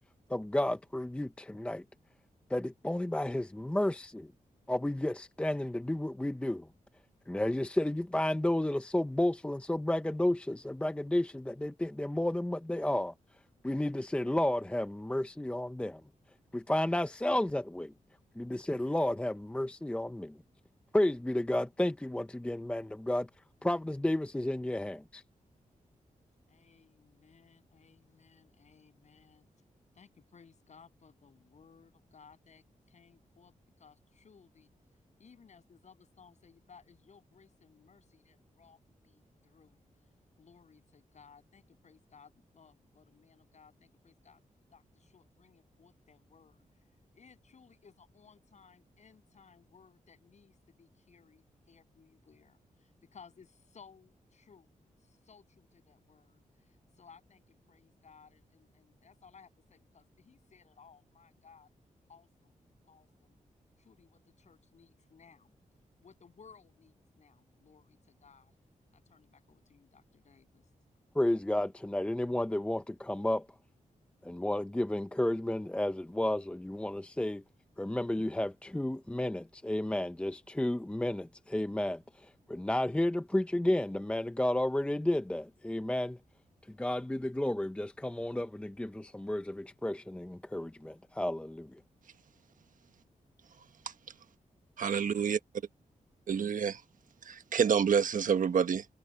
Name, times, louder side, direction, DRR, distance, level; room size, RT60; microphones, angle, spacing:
voice 1, 0.3-1.8 2.5-4.3 4.7-6.7 7.3-13.1 13.6-16.0 16.5-17.9 18.4-20.4 20.9-23.3 23.6-25.2 71.1-73.5 74.2-77.4 77.8-86.2 86.7-91.8, left 1 dB, 10° left, 0.7 m, -32 dB
voice 2, 26.5-29.5 29.9-34.7 35.2-39.8 40.4-44.4 44.7-46.7 47.1-54.7 55.0-61.7 62.1-62.5 62.8-63.4 63.8-65.5 66.0-68.6 68.9-70.7, left 6 dB, 55° left, 7.9 m, -60 dB
voice 3, 93.6-93.9 94.8-95.4 96.3-96.8 97.2-98.9, right 7 dB, 75° right, 1.3 m, -28 dB
wide cardioid pair, 130°, 14 cm